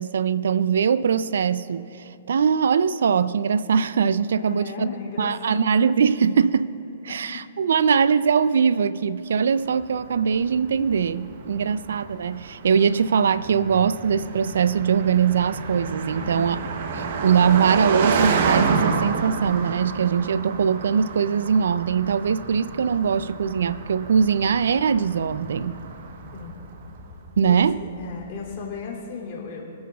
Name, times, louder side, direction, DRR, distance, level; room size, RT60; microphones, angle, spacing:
voice 1, 0.0-4.9 5.2-6.7 7.0-16.6 16.9-25.8 27.4-27.8, right 6 dB, 80° right, 0.4 m, -21 dB
voice 2, 4.4-5.7 7.1-7.4 11.5-11.6 16.2-16.5 26.3-26.6 27.4-29.7, left 5 dB, 45° left, 2.9 m, -35 dB
sound 1, 9.7-28.6, left 1 dB, 5° right, 2.9 m, -45 dB
Car passing by, 10.1-26.5, right 5 dB, 55° right, 0.9 m, -29 dB
27.5 x 9.5 x 2.4 m
hypercardioid pair, 155°, 0 cm